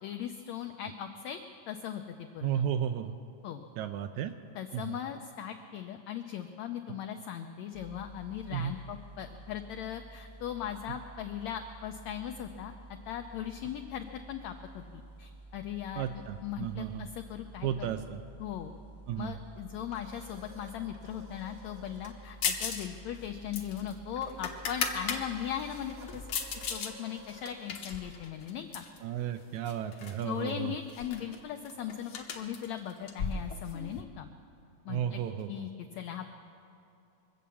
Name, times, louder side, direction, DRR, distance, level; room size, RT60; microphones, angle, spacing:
voice 1, 0.0-1.4 1.7-2.0 2.3-2.6 3.4-3.6 4.5-12.7 13.1-17.9 18.4-18.7 19.2-26.3 26.5-28.8 30.2-34.3 34.8-35.2 35.5-36.3, left 9 dB, 90° left, 5 dB, 1.6 m, -39 dB
voice 2, 2.4-3.1 3.8-4.3 4.7-5.0 8.5-8.7 15.9-17.1 17.6-18.2 19.1-19.4 29.0-30.7 34.9-35.7, right 10 dB, 90° right, 7 dB, 1.7 m, -33 dB
sound 1, 7.7-26.8, right 2 dB, 15° left, 0.8 m, -51 dB
sound 2, 19.9-22.2 22.5-22.8 23.0-29.7, right 2 dB, 65° right, 0.8 m, -55 dB
sound 3, 22.4-22.9 23.1-25.2 25.7-26.9 27.3-29.0 29.7-30.2 30.5-30.6 30.9-34.0, left 6 dB, 70° left, 1.2 m, -36 dB
24.0 x 8.5 x 7.0 m, 2.8 s
omnidirectional pair, 4.0 m